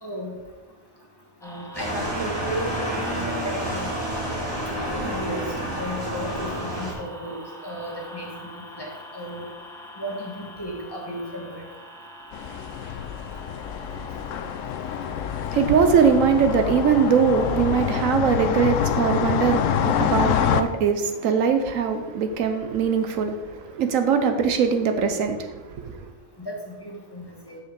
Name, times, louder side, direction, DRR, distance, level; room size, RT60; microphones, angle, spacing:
voice 1, 0.0-0.3 1.4-3.9 4.8-5.4 5.7-7.4 7.6-8.5 8.8-9.4 10.0-11.6 26.4-27.6, equal, 20° left, 1.3 m, -34 dB
sound 1, 1.4-18.0, right 1 dB, 5° left, 0.9 m, -44 dB
sound 2, 1.7-6.9, right 1 dB, 20° right, 2.0 m, -29 dB
sound 3, 12.3-20.6, left 8 dB, 70° left, 0.9 m, -26 dB
voice 2, 15.5-26.0, right 6 dB, 75° right, 1.1 m, -21 dB
6.6 x 5.5 x 5.2 m
omnidirectional pair, 1.4 m